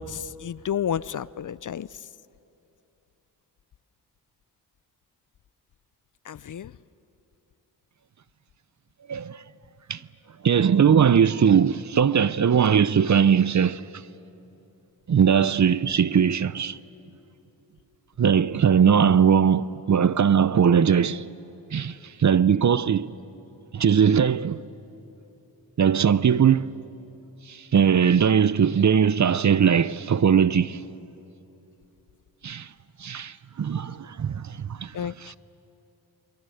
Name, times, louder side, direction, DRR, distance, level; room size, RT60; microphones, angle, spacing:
voice 1, 0.0-2.0 6.3-6.7 34.9-35.4, left 8 dB, 50° left, 0.5 m, -31 dB
voice 2, 10.4-13.8 15.1-16.8 18.2-21.2 21.7-23.1 23.7-24.6 25.8-26.7 27.5-30.8 32.4-32.7 33.0-35.4, right 7 dB, 45° right, 0.6 m, -20 dB
28.5 x 23.0 x 7.9 m
cardioid pair, 70°, 41 cm